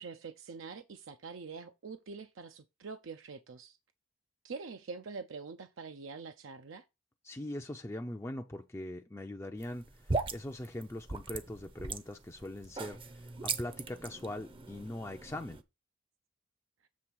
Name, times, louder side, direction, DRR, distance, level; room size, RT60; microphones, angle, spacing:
voice 1, 0.0-3.8 4.4-6.8, right 4 dB, 75° right, 0.6 m, -45 dB
voice 2, 7.2-15.6, left 1 dB, 15° left, 0.5 m, -41 dB
sound 1, 9.6-15.6, right 3 dB, 25° right, 0.6 m, -39 dB
7.4 x 3.4 x 6.2 m
head